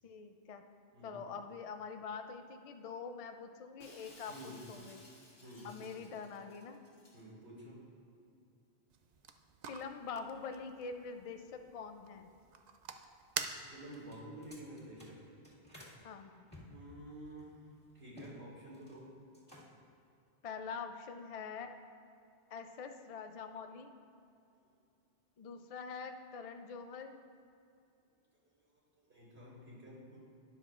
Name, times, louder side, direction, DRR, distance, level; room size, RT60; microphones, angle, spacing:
voice 1, 0.0-0.6 1.0-5.0 5.6-6.8 9.7-12.3 16.0-16.4 20.4-21.7 22.5-23.9 25.4-27.2, left 5 dB, 50° left, 7 dB, 0.4 m, -45 dB
voice 2, 0.9-1.2 4.3-4.7 5.4-6.0 7.1-7.9 13.4-15.3 16.7-17.6 17.9-19.1 28.6-28.7 28.9-30.2, right 1 dB, 85° right, -5 dB, 2.5 m, -50 dB
Shatter, 3.8-7.2, left 2 dB, 65° left, 1.7 m, -58 dB
sound 1, 8.9-14.1, right 6 dB, 55° right, 0.5 m, -47 dB
sound 2, 13.9-16.0 16.5-18.3 18.6-19.0 19.3-19.9, left 1 dB, 10° left, 2.0 m, -56 dB
12.0 x 9.8 x 2.5 m, 2.6 s
omnidirectional pair, 1.0 m